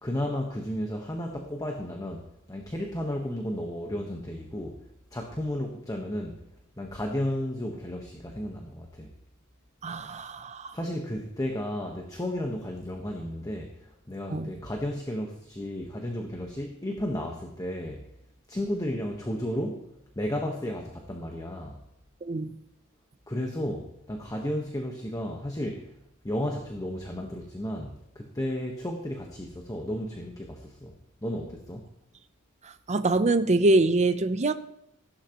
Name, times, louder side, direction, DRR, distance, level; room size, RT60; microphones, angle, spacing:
voice 1, 0.0-2.2 2.5-4.8 5.1-6.4 6.8-9.1 10.7-18.0 18.5-19.9 20.2-21.8 23.3-25.9 26.2-30.9 31.2-31.9, left 1 dB, 15° left, 1.2 m, -33 dB
voice 2, 9.8-10.7 14.3-14.5 22.2-22.5 32.9-34.5, right 2 dB, 35° right, 0.6 m, -24 dB
15.5 x 12.0 x 3.0 m
head